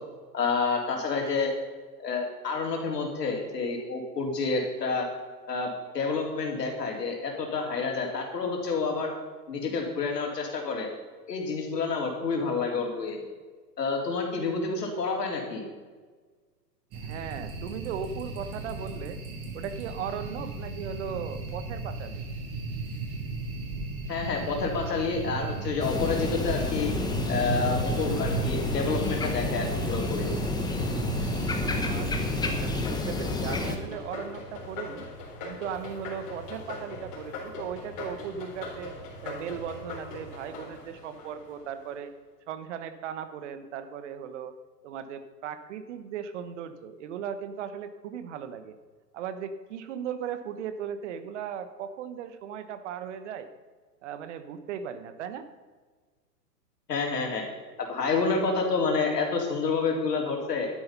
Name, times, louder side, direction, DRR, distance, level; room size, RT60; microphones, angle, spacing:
voice 1, 0.3-1.5 2.0-5.1 5.5-9.1 9.5-10.9 11.3-13.2 13.8-15.6 24.1-26.9 27.3-30.3 56.9-57.5 57.8-60.7, left 4 dB, 70° left, 1 dB, 3.6 m, -29 dB
sound 1, 16.9-32.8, right 3 dB, 25° right, 3.2 m, -35 dB
voice 2, 16.9-19.2 19.5-22.2 31.5-35.1 35.4-39.0 39.2-42.1 42.5-44.5 44.8-48.8 49.1-53.5 54.0-55.5, right 8 dB, 45° right, 11 dB, 1.2 m, -37 dB
sound 2, 25.8-33.8, left 3 dB, 10° left, 1.1 m, -30 dB
sound 3, 32.8-41.9, left 3 dB, 35° left, 4.2 m, -41 dB
12.0 x 9.6 x 5.6 m, 1.4 s
figure-of-eight pair, 115°, 50 cm